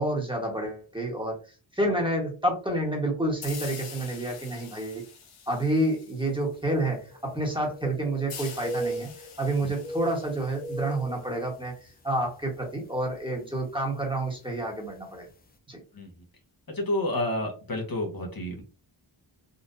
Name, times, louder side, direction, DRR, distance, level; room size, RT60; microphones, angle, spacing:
voice 1, 0.0-1.4 1.7-5.0 5.5-9.1 9.4-15.3 15.7-15.8, right 1 dB, 10° right, -1 dB, 1.3 m, -29 dB
sound 1, 3.4-6.8 8.3-11.8, left 6 dB, 80° left, 0.8 m, -45 dB
sound 2, 6.6-6.7 7.0-8.3 8.6-9.5 9.7-11.9 12.3-12.5 13.1-13.4 14.4-14.5 14.9-15.0, right 1 dB, 20° left, 0.5 m, -37 dB
voice 2, 16.7-18.6, left 1 dB, 45° left, 0 dB, 1.1 m, -29 dB
4.0 x 2.4 x 2.6 m, 0.35 s
cardioid pair, 55°, 50 cm